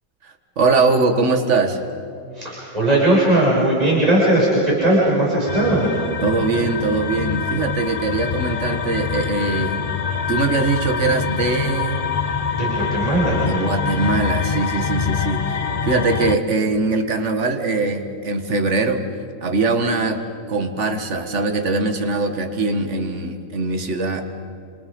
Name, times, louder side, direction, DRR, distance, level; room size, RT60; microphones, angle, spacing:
voice 1, 0.2-1.8 6.2-9.8 10.3-12.0 13.4-19.0 19.4-20.2 20.5-24.2, right 3 dB, 40° right, 6 dB, 2.0 m, -21 dB
voice 2, 2.3-5.9 12.2-13.6, right 1 dB, 20° right, -7 dB, 7.0 m, -18 dB
sound 1, 5.5-16.4, left 6 dB, 60° left, 0.4 m, -25 dB
30.0 x 28.0 x 5.3 m, 2.7 s
omnidirectional pair, 1.9 m